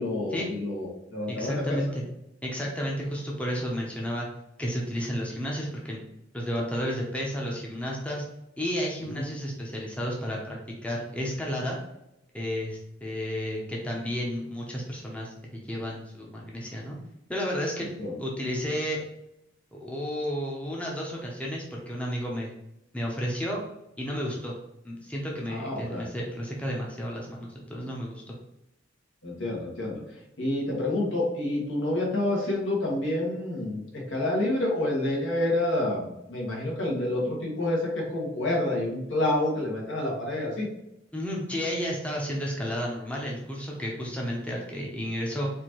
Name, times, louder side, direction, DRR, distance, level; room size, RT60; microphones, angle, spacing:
voice 1, 0.0-1.8 9.1-9.3 18.0-18.2 25.5-26.1 29.2-30.0 30.4-40.7, left 1 dB, 80° left, -3 dB, 1.4 m, -28 dB
voice 2, 1.3-2.0 2.4-4.3 4.6-6.0 6.3-8.2 8.6-11.8 12.3-17.0 17.3-17.9 18.2-19.0 19.7-22.5 22.9-23.6 24.0-24.6 24.8-28.4 41.1-45.5, equal, 5° left, -3 dB, 0.7 m, -32 dB
4.3 x 2.7 x 3.0 m, 0.84 s
head